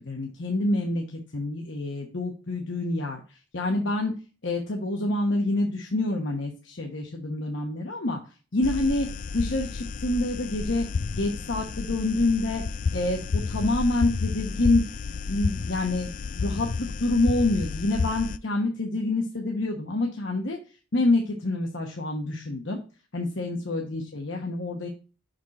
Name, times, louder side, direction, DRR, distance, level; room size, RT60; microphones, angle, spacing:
voice 1, 0.0-4.1 4.4-8.2 8.5-9.1 9.3-10.9 11.2-12.6 12.9-14.8 15.3-20.6 20.9-22.8 23.1-24.9, left 2 dB, 60° left, 2 dB, 1.0 m, -27 dB
tubelight hum, 8.6-18.4, left 4 dB, 40° left, 0.3 m, -31 dB
6.1 x 5.1 x 4.1 m, 0.35 s
head